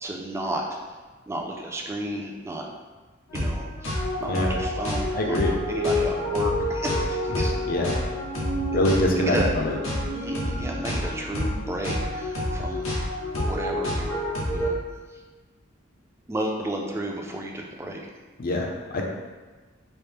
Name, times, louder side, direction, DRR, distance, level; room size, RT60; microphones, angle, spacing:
voice 1, 0.0-0.8 1.3-2.7 3.3-7.5 8.7-9.5 10.2-12.9 13.3-14.2 14.5-14.8 15.1-15.2 16.3-18.0, right 1 dB, 15° right, 0 dB, 0.3 m, -33 dB
sound 1, 3.3-14.7, left 1 dB, 80° left, 0.9 m, -28 dB
voice 2, 5.1-5.5 7.3-7.9 8.7-9.7 18.4-18.7 18.9-19.0, left 1 dB, 45° left, 1 dB, 0.5 m, -24 dB
4.2 x 2.0 x 3.4 m, 1.3 s
head